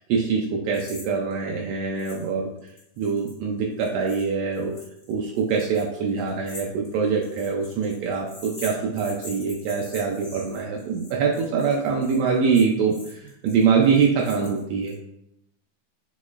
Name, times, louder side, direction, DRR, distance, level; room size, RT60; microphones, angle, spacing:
voice 1, 0.0-2.5 3.0-4.7 5.1-14.9, right 5 dB, 85° right, -1 dB, 1.4 m, -24 dB
sound 1, 0.7-1.1 1.3-1.4 2.0-2.3 2.6-14.9, left 2 dB, 85° left, 0.6 m, -44 dB
6.2 x 3.0 x 2.4 m, 0.78 s
omnidirectional pair, 3.5 m